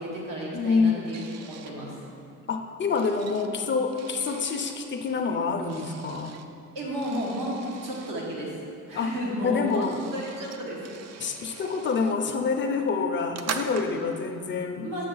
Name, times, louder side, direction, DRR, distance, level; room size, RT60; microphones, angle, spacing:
voice 1, 0.0-2.1 6.7-8.5 8.9-10.9 11.4-11.6 14.8-15.0, equal, 90° right, -4 dB, 1.8 m, -33 dB
voice 2, 0.5-1.1 2.5-6.3 8.9-9.1 9.4-10.0 11.2-14.9, left 4 dB, 35° left, 4 dB, 0.5 m, -27 dB
sound 1, 1.1-1.8 2.5-4.8 5.6-6.5 7.0-8.2 9.1-9.2 9.4-12.2 12.6-14.2, right 7 dB, 55° right, 0.4 m, -41 dB
7.3 x 6.2 x 3.9 m, 2.5 s
cardioid pair, 155°, 32 cm